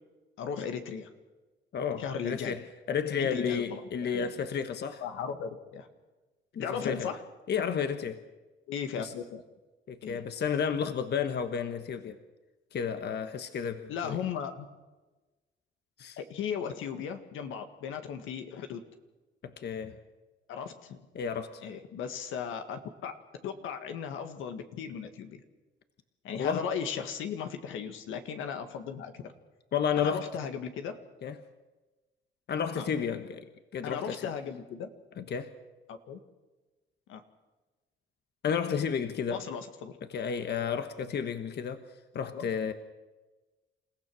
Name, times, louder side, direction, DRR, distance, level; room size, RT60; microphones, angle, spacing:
voice 1, 0.4-1.1 2.0-2.6 3.2-4.5 5.0-5.9 6.6-7.2 8.7-9.4 10.0-10.2 13.9-14.7 16.2-18.8 20.5-21.0 21.6-25.4 26.2-29.3 30.0-31.0 32.8-32.9 33.8-34.9 35.9-36.2 37.1-37.2 39.3-40.0 42.3-42.5, left 7 dB, 85° left, 6 dB, 1.9 m, -36 dB
voice 2, 1.7-5.0 6.5-7.1 7.5-8.2 9.0-9.1 9.9-12.2 12.7-14.2 16.0-16.2 19.4-20.0 21.1-21.6 26.3-26.6 29.7-30.3 31.2-31.4 32.5-33.4 33.7-34.3 35.2-35.5 38.4-39.5 40.1-41.8 42.1-42.7, left 7 dB, 55° left, 8 dB, 1.3 m, -32 dB
28.5 x 15.5 x 6.3 m, 1.2 s
cardioid pair, 90°, 20 cm